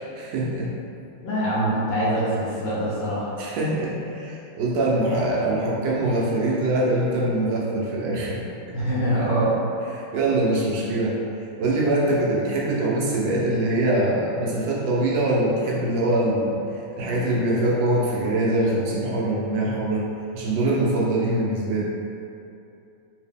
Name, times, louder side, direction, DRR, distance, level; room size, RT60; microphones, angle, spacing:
voice 1, 0.1-0.7 3.4-8.4 8.7-8.8 9.9-11.2 11.6-16.5 16.9-20.0 20.3-21.8, right 1 dB, 85° right, -4 dB, 1.5 m, -23 dB
voice 2, 1.2-3.3 8.7-9.6, right 1 dB, 75° left, -8 dB, 1.7 m, -24 dB
3.7 x 2.9 x 3.4 m, 2.7 s
omnidirectional pair, 2.0 m